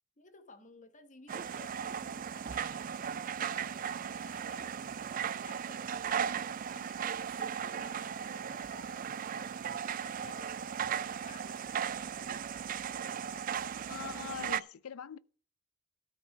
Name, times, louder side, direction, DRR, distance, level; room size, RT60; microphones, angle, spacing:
voice 1, 0.2-2.9 3.5-3.8 4.1-6.4 6.7-11.9, left 3 dB, 35° left, 1.1 m, -56 dB
sound 1, 1.3-14.6, right 8 dB, 40° right, 0.3 m, -37 dB
voice 2, 13.9-15.2, left 7 dB, 90° left, 0.5 m, -42 dB
13.0 x 5.3 x 5.6 m
head